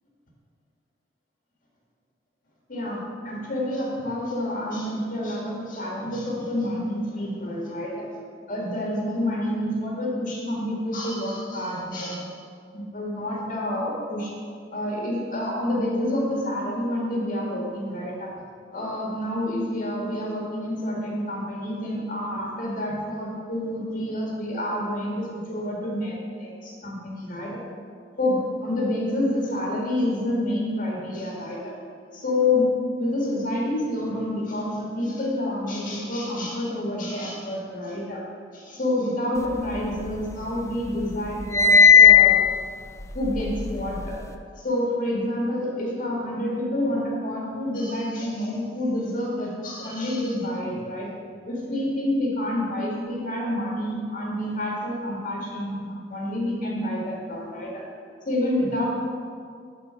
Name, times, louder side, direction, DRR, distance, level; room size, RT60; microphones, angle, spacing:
voice 1, 2.7-8.1 8.5-12.3 12.9-14.3 14.7-18.3 18.7-27.6 28.2-31.7 32.1-32.7 33.0-38.2 38.5-42.4 43.1-44.2 44.5-51.1 51.5-57.8 58.3-58.8, left 1 dB, 45° left, -2 dB, 1.8 m, -28 dB
sound 1, 39.5-40.6 40.9-44.3, left 7 dB, 15° left, 0.4 m, -17 dB
11.5 x 4.5 x 5.6 m, 2.2 s
head